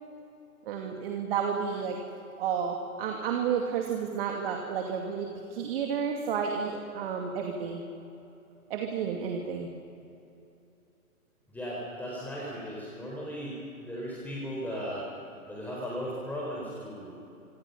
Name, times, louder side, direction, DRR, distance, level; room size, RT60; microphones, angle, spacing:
voice 1, 0.7-2.0 2.4-7.8 8.7-9.7, right 7 dB, 40° right, 2 dB, 2.6 m, -31 dB
voice 2, 11.5-15.2 15.5-17.2, equal, 5° left, -5 dB, 4.2 m, -37 dB
27.0 x 26.0 x 5.6 m, 2.8 s
hypercardioid pair, 135°, 44 cm